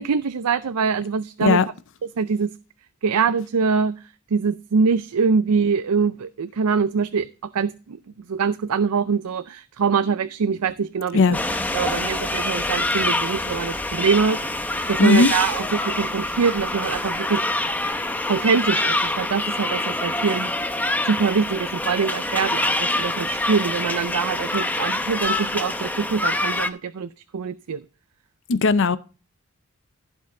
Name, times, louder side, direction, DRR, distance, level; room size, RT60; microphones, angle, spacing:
voice 1, 0.0-1.6 2.2-2.5 3.0-3.9 4.3-7.3 7.5-8.0 8.3-11.2 11.7-14.6 14.9-17.4 18.3-20.5 21.0-27.8, right 5 dB, 90° right, 0.5 m, -23 dB
sound 1, 11.3-26.7, left 1 dB, 5° left, 0.7 m, -25 dB
voice 2, 15.0-15.3 28.5-29.0, left 3 dB, 60° left, 0.6 m, -17 dB
15.5 x 5.4 x 3.8 m
head